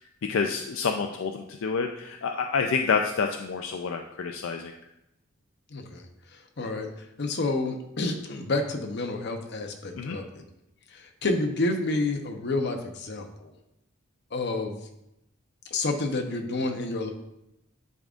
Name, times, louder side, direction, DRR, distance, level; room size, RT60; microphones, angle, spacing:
voice 1, 0.3-4.7 9.9-10.2, left 5 dB, 75° left, 4 dB, 0.4 m, -28 dB
voice 2, 5.7-6.0 6.6-6.9 7.2-10.4 10.9-13.5 14.3-14.8 15.7-17.1, left 2 dB, 60° left, 4 dB, 0.8 m, -29 dB
10.5 x 3.7 x 2.5 m, 0.86 s
head